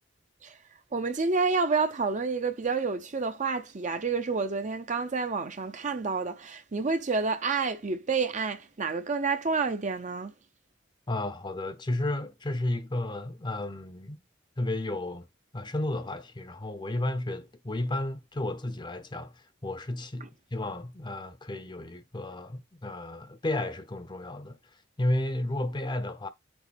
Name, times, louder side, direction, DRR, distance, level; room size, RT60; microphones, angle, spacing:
voice 1, 0.9-10.3 20.2-20.3, right 4 dB, 40° right, 0.6 m, -29 dB
voice 2, 11.1-14.2 14.6-15.3 15.5-24.6 25.0-26.3, left 1 dB, 25° left, 0.7 m, -32 dB
6.2 x 5.1 x 3.4 m
head